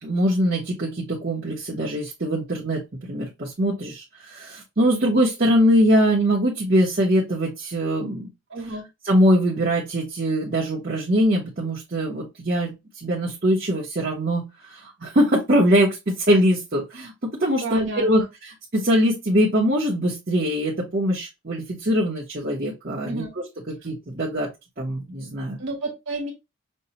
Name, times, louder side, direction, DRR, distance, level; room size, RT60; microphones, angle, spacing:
voice 1, 0.0-8.3 9.0-18.2 18.7-23.2 23.8-24.5 24.8-25.6, equal, 50° right, 0.9 m, -22 dB
voice 2, 8.5-8.9 17.6-18.1 23.0-23.3 25.6-26.3, right 2 dB, 75° right, 1.3 m, -30 dB
5.4 x 2.2 x 2.8 m
head